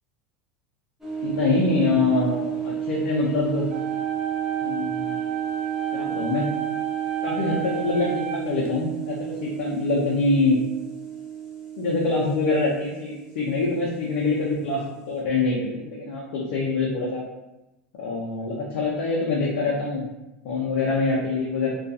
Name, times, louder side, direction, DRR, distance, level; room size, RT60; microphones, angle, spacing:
sound 1, 1.0-15.2, right 9 dB, 5° right, 0.7 m, -32 dB
voice 1, 1.2-3.7 4.6-5.2 5.9-6.5 7.2-10.6 11.8-17.2 18.0-20.0 20.4-21.7, left 3 dB, 70° left, -4 dB, 0.6 m, -25 dB
sound 2, 3.7-8.7, right 10 dB, 85° right, 0.4 m, -32 dB
2.3 x 2.3 x 2.6 m, 0.95 s
hypercardioid pair, 95°, 7 cm